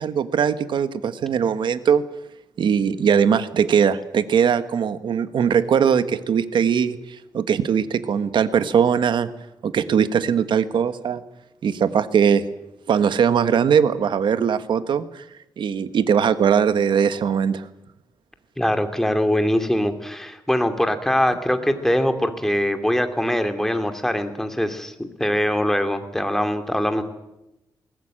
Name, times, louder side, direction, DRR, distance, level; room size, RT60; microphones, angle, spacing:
voice 1, 0.0-2.0 2.6-7.0 7.3-9.3 9.6-11.2 11.6-12.4 12.9-15.2 15.6-17.7, right 7 dB, 75° right, 11 dB, 1.4 m, -20 dB
voice 2, 18.6-27.0, equal, 5° left, 7 dB, 2.6 m, -22 dB
21.5 x 19.0 x 8.8 m, 0.92 s
cardioid pair, 100°, 8 cm